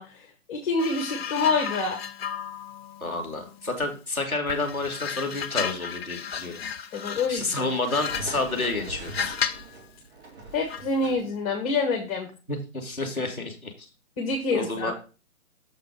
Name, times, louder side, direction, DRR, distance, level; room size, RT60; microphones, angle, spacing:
voice 1, 0.0-2.0 6.9-7.7 10.5-12.3 14.2-14.9, left 3 dB, 25° left, 3 dB, 1.1 m, -27 dB
sound 1, 0.8-4.0 4.5-9.7 10.7-10.9, left 7 dB, 45° left, 0.6 m, -34 dB
voice 2, 3.0-6.6 7.3-9.4 12.5-13.7 14.5-14.9, left 2 dB, 5° right, -8 dB, 0.6 m, -29 dB
sound 2, 8.1-11.5 11.8-11.9, right 3 dB, 50° right, 2.7 m, -41 dB
6.4 x 3.8 x 5.3 m, 0.33 s
hypercardioid pair, 150°, 42 cm